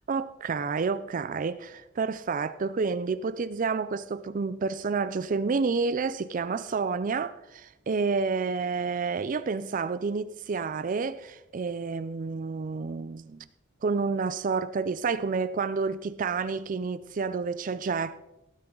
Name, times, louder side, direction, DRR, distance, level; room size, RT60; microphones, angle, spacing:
voice 1, 0.1-13.4 13.8-18.2, right 4 dB, 45° right, 0.4 m, -29 dB
17.5 x 9.9 x 3.8 m
head